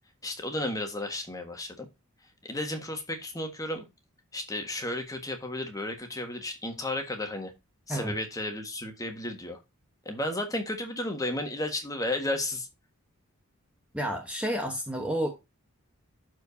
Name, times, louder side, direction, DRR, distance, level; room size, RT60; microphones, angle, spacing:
voice 1, 0.2-1.9 2.4-3.8 4.3-7.5 7.9-9.6 10.0-12.7, left 1 dB, 15° left, 1.5 m, -33 dB
voice 2, 13.9-15.3, right 1 dB, 5° right, 1.0 m, -30 dB
12.0 x 4.8 x 2.7 m
head